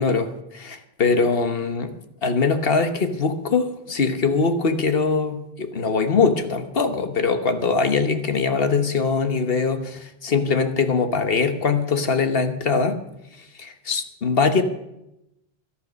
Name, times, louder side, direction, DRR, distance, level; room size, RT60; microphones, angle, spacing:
voice 1, 0.0-1.9 2.2-13.0 13.6-14.6, left 4 dB, 65° left, 8 dB, 1.4 m, -22 dB
17.0 x 11.5 x 5.3 m, 0.87 s
omnidirectional pair, 1.1 m